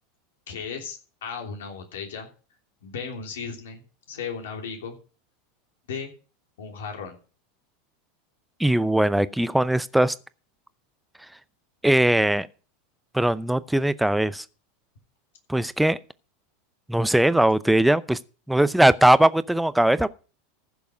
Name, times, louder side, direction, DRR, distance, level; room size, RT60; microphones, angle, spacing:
voice 1, 0.5-2.3 2.8-3.8 4.1-5.0 5.9-6.1 6.6-7.2, left 6 dB, 70° left, 3.1 m, -35 dB
voice 2, 8.6-10.1 11.8-12.5 13.1-14.4 15.5-16.0 16.9-18.2 18.5-20.1, right 1 dB, 5° right, 0.6 m, -20 dB
15.0 x 7.1 x 5.0 m
figure-of-eight pair, 85°, 0 cm